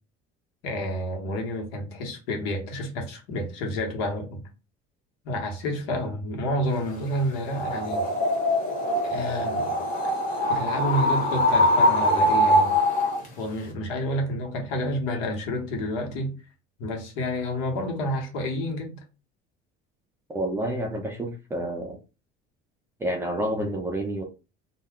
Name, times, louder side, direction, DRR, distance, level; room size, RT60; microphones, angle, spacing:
voice 1, 0.6-4.4 5.2-8.1 9.0-9.7 10.5-12.7 13.4-16.3 16.8-19.0, equal, 80° left, 1.0 m, -29 dB
sound 1, 7.5-13.3, left 1 dB, 40° left, 0.9 m, -23 dB
voice 2, 20.3-22.0 23.0-24.2, right 1 dB, 10° right, 0.3 m, -29 dB
2.3 x 2.2 x 3.5 m
cardioid pair, 165°, 21 cm